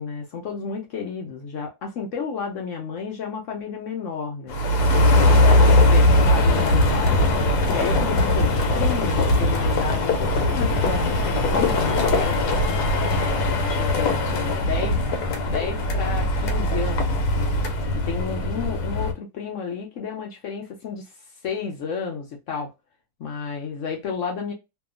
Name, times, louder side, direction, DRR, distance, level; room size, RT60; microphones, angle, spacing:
voice 1, 0.0-4.6 4.9-7.2 7.7-12.6 13.0-15.0 15.4-17.6 18.1-21.1 21.4-22.7 23.2-24.5, left 6 dB, 65° left, 0.8 m, -32 dB
sound 1, 4.5-19.1, left 1 dB, 85° left, 1.2 m, -20 dB
2.8 x 2.4 x 2.3 m
omnidirectional pair, 1.7 m